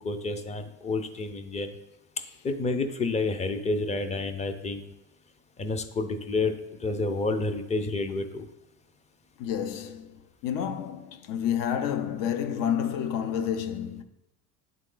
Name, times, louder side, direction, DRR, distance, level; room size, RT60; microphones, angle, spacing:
voice 1, 0.0-1.7 2.4-4.8 5.6-6.5 6.8-8.5, left 3 dB, 20° left, 0.5 m, -29 dB
voice 2, 9.4-14.0, left 9 dB, 65° left, 0.7 m, -30 dB
8.8 x 3.7 x 3.8 m
cardioid pair, 120°, 37 cm